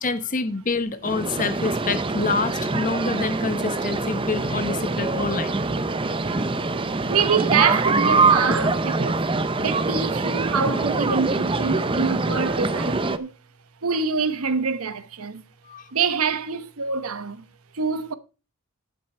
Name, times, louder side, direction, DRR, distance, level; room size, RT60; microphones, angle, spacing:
voice 1, 0.0-5.6 15.7-15.9, left 4 dB, 40° left, 1.1 m, -27 dB
sound 1, 1.0-13.2, right 3 dB, 25° right, 0.6 m, -24 dB
voice 2, 7.1-9.2 9.6-13.3 13.8-15.4 15.9-17.5 17.7-18.1, right 5 dB, 85° right, 1.0 m, -25 dB
10.0 x 9.1 x 4.4 m
head